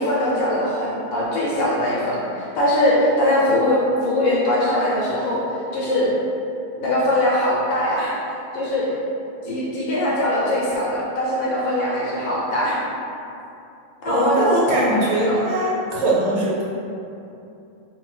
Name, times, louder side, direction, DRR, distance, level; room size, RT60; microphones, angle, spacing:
voice 1, 0.0-5.4 5.7-6.1 6.8-8.2 8.5-8.9 9.4-12.8 14.0-15.0 15.3-15.4, left 1 dB, 75° left, -6 dB, 1.2 m, -21 dB
voice 2, 14.0-16.6, right 1 dB, 85° right, -5 dB, 1.6 m, -21 dB
3.1 x 2.7 x 3.8 m, 2.7 s
omnidirectional pair, 2.4 m